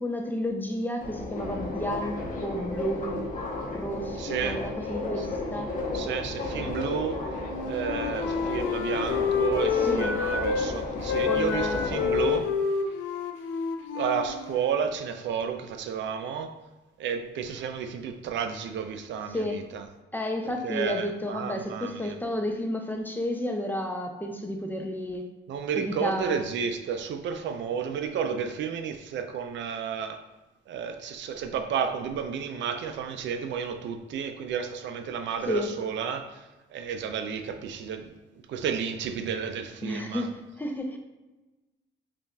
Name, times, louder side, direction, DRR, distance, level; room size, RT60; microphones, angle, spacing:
voice 1, 0.0-3.2 3.7-5.7 9.8-10.1 11.2-11.8 19.3-19.7 20.1-25.3 25.8-26.6 35.5-35.7 39.8-41.0, left 1 dB, 10° left, 3 dB, 0.5 m, -31 dB
Subway metro underground, 1.0-12.4, left 2 dB, 40° left, 0.9 m, -33 dB
voice 2, 4.2-4.6 5.9-7.2 7.7-12.5 13.9-16.5 17.0-19.8 20.6-22.2 25.5-30.2 30.7-38.1 38.5-40.3, right 7 dB, 70° right, 7 dB, 0.4 m, -32 dB
Wind instrument woodwind instrument, 7.4-10.7 11.0-14.8, left 6 dB, 80° left, 0.4 m, -28 dB
5.2 x 2.5 x 2.3 m, 1.1 s
cardioid pair, 90°, 20 cm